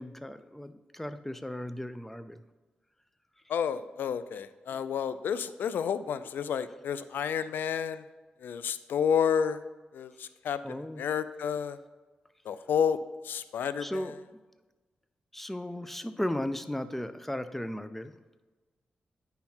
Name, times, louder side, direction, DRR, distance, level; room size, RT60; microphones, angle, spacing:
voice 1, 0.0-2.4 10.6-11.0 13.8-14.2 15.3-18.2, left 1 dB, 5° left, 12 dB, 0.6 m, -36 dB
voice 2, 3.5-8.0 8.4-9.6 9.9-10.6 11.0-11.8 12.5-13.0 13.2-14.1, left 7 dB, 85° left, 14 dB, 0.3 m, -30 dB
9.5 x 5.8 x 4.4 m, 1.2 s
cardioid pair, 75°, 3 cm